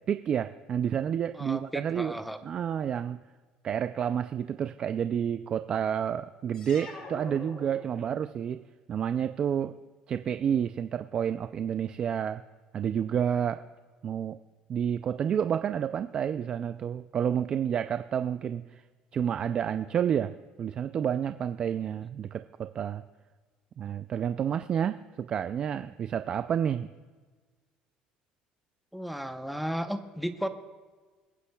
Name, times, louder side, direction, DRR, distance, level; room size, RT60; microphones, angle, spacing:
voice 1, 0.1-2.2 2.4-3.2 3.6-8.6 8.9-9.8 10.1-12.4 12.7-13.7 14.0-14.4 14.7-18.8 19.1-23.0 23.8-26.9, right 8 dB, 35° right, 10 dB, 0.3 m, -30 dB
voice 2, 1.3-2.4 28.9-30.5, equal, ahead, 7 dB, 0.8 m, -34 dB
sound 1, 6.5-8.4, left 3 dB, 35° left, 1.9 m, -45 dB
25.0 x 9.9 x 2.3 m, 1.4 s
cardioid pair, 140°, 3 cm